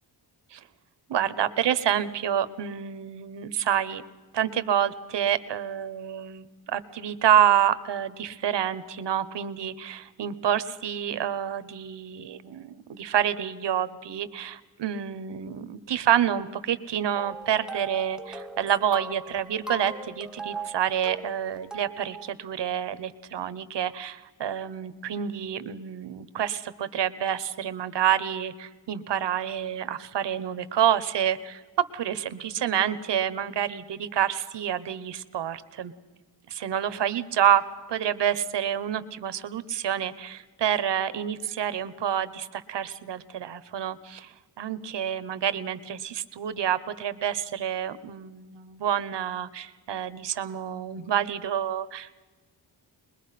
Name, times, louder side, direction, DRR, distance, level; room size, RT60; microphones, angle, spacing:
voice 1, 1.1-4.0 4.3-31.6 31.9-35.9 36.5-37.6 37.9-52.1, right 9 dB, 75° right, 13 dB, 1.2 m, -28 dB
sound 1, 17.1-22.3, right 3 dB, ahead, 0.9 m, -39 dB
23.0 x 21.0 x 5.9 m, 1.3 s
cardioid pair, 100°, 42 cm